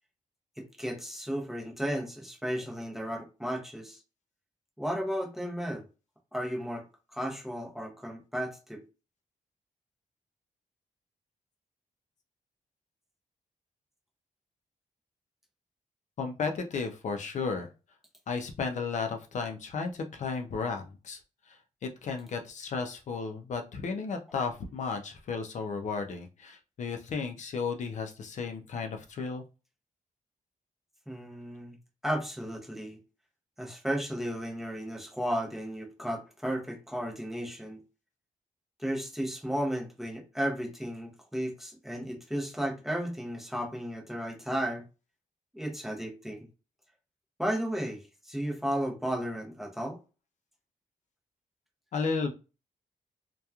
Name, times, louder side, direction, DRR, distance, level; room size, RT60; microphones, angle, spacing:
voice 1, 0.6-4.0 4.8-5.8 6.3-6.9 7.1-8.8 31.1-31.8 32.0-33.0 33.6-37.8 38.8-44.8 45.5-46.4 47.4-50.0, equal, ahead, 0.6 m, -34 dB
voice 2, 16.2-17.7 18.3-21.2 21.5-29.4 51.9-52.3, left 5 dB, 60° left, 0.4 m, -34 dB
2.8 x 2.2 x 2.3 m
wide cardioid pair, 165°, 14 cm